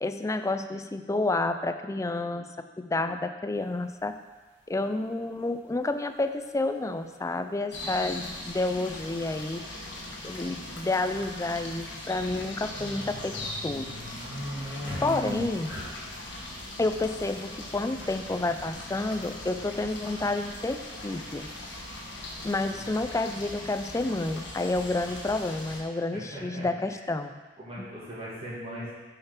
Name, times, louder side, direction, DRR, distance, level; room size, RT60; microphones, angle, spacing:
voice 1, 0.0-2.5 2.8-4.1 4.7-9.6 10.2-14.0 15.0-15.7 16.8-21.5 22.4-27.3, left 2 dB, 15° left, 8 dB, 0.4 m, -30 dB
sound 1, 3.7-3.8 5.2-5.3 6.7-6.8 7.0-7.1 9.0-9.1 9.4-9.5 10.1-10.6 12.0-16.2, equal, 10° right, 2.4 m, -38 dB
sound 2, 7.7-25.8, left 1 dB, 65° left, 1.3 m, -40 dB
voice 2, 26.1-27.0 27.6-28.9, equal, 30° right, -8 dB, 2.1 m, -40 dB
6.7 x 5.7 x 5.9 m, 1.3 s
head